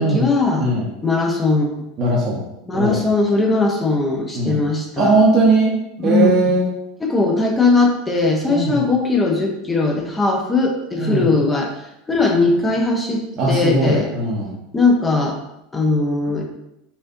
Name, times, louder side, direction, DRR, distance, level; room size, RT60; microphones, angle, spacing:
voice 1, 0.0-0.7 1.0-1.8 2.7-5.1 6.0-6.3 7.0-11.7 12.1-14.1 14.7-15.4 15.7-16.4, left 3 dB, 15° left, 1 dB, 0.7 m, -19 dB
voice 2, 0.6-0.9 2.0-2.4 2.7-3.0 4.4-4.6 5.0-5.7 6.0-6.7 8.5-8.8 10.9-11.3 13.4-14.5, right 2 dB, 40° right, -5 dB, 0.8 m, -18 dB
4.1 x 2.5 x 2.7 m, 0.85 s
figure-of-eight pair, 80°, 0 cm